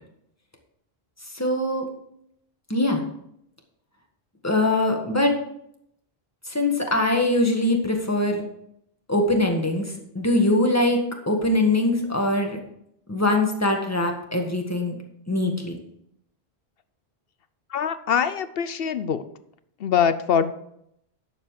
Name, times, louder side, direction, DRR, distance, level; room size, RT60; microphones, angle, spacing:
voice 1, 1.3-1.8 2.7-3.0 4.4-5.3 6.5-8.4 9.1-11.0 11.3-12.6 13.1-15.0 15.3-15.7, left 1 dB, 15° left, 2 dB, 1.6 m, -22 dB
voice 2, 17.7-19.2 19.8-20.5, left 7 dB, 70° left, 12 dB, 0.9 m, -23 dB
11.0 x 7.3 x 4.8 m, 0.74 s
omnidirectional pair, 1.1 m